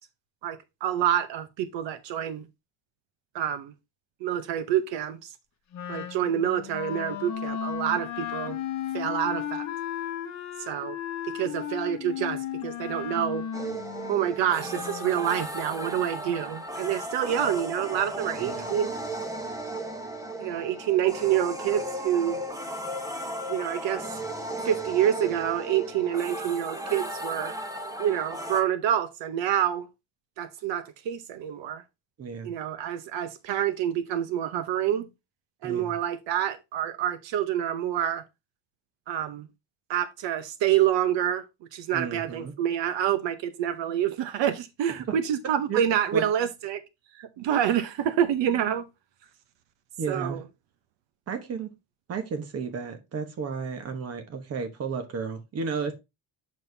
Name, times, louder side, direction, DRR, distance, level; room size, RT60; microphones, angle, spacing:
voice 1, 0.4-2.5 3.3-3.7 4.2-5.3 5.9-8.6 8.9-9.6 10.7-11.0 11.3-13.4 14.1-18.9 20.4-22.4 23.5-24.1 24.6-27.5 28.0-29.9 30.4-31.8 32.4-35.1 35.6-38.2 39.1-39.5 39.9-41.4 41.7-46.8 47.1-48.9 50.1-50.4, right 10 dB, 70° right, 0.9 m, -27 dB
Wind instrument woodwind instrument, 5.7-15.2, left 9 dB, 40° left, 0.9 m, -35 dB
sound 1, 13.5-28.6, right 1 dB, 10° right, 0.8 m, -35 dB
voice 2, 18.4-18.7 32.2-32.5 35.6-35.9 41.9-42.5 45.1-45.2 45.7-45.8 46.1-46.2 50.0-50.4 51.3-51.7 52.1-55.9, right 5 dB, 35° right, 1.1 m, -33 dB
7.1 x 6.4 x 2.7 m
cardioid pair, 175°, 45 cm